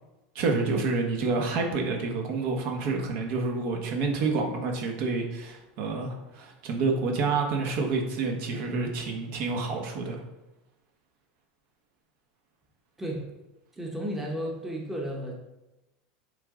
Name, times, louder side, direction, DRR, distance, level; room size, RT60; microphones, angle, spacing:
voice 1, 0.3-10.2, right 3 dB, 50° right, 2 dB, 1.2 m, -28 dB
voice 2, 13.0-13.3 13.7-15.3, equal, 5° right, -2 dB, 1.0 m, -33 dB
8.3 x 3.6 x 3.7 m, 0.99 s
supercardioid pair, 160°, 4 cm